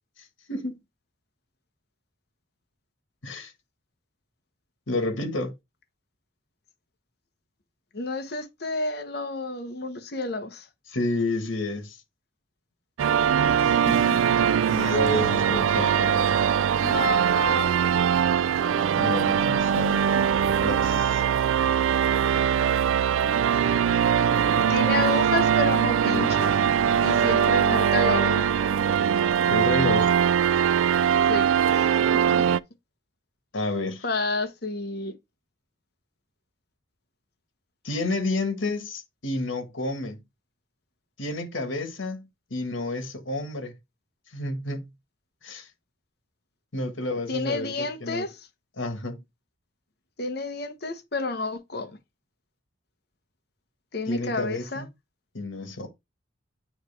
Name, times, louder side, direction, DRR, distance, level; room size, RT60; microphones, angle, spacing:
voice 1, 4.9-5.5 10.9-12.0 13.4-14.3 14.7-16.3 19.0-20.0 20.6-21.2 29.5-30.2 33.5-34.0 37.8-40.2 41.2-43.7 44.3-44.9 45.4-45.7 46.7-48.2 48.8-49.2 54.1-54.9 55.3-55.9, left 1 dB, 80° left, 1.6 m, -30 dB
voice 2, 7.9-10.7 13.6-14.2 15.1-15.3 16.8-17.9 24.7-26.5 27.0-28.5 31.3-32.5 34.0-35.1 47.3-48.4 50.2-51.9 53.9-54.9, left 2 dB, 55° left, 1.1 m, -30 dB
sound 1, 13.0-32.6, right 8 dB, 90° right, 0.3 m, -22 dB
8.9 x 3.2 x 3.3 m
head